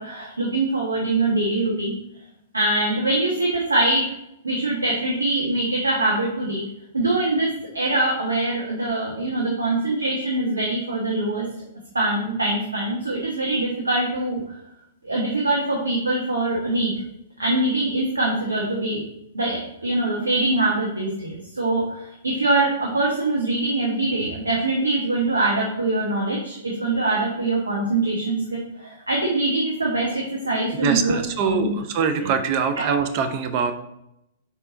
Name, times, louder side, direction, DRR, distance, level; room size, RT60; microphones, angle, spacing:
voice 1, 0.0-1.9 2.5-4.1 4.4-6.6 6.9-11.5 11.9-14.4 15.0-16.9 17.4-19.0 19.3-31.7 32.2-32.3 32.8-32.9, right 2 dB, 85° right, -3 dB, 1.3 m, -23 dB
voice 2, 30.8-33.7, right 6 dB, 45° right, 9 dB, 0.7 m, -23 dB
5.6 x 4.3 x 4.0 m, 0.81 s
figure-of-eight pair, 110°, 0 cm